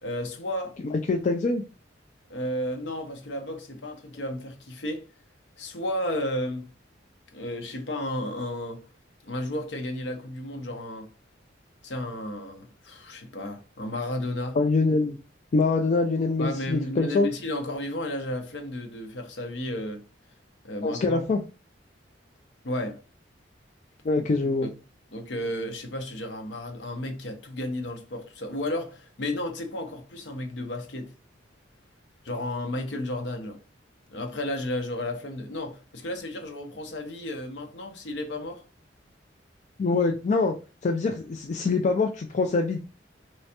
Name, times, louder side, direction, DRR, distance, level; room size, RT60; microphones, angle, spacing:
voice 1, 0.0-0.7 2.3-5.0 5.6-6.7 7.3-8.8 9.2-11.1 11.8-14.6 16.4-20.0 20.6-21.2 22.6-23.0 24.6-24.7 25.1-31.1 32.2-33.6 34.1-38.6, left 1 dB, 65° left, 0.8 m, -33 dB
voice 2, 0.9-1.6 14.5-15.2 15.5-17.3 20.8-21.4 24.0-24.7 39.8-40.5 40.8-42.8, left 3 dB, 40° left, 0.3 m, -24 dB
3.3 x 3.1 x 2.8 m
head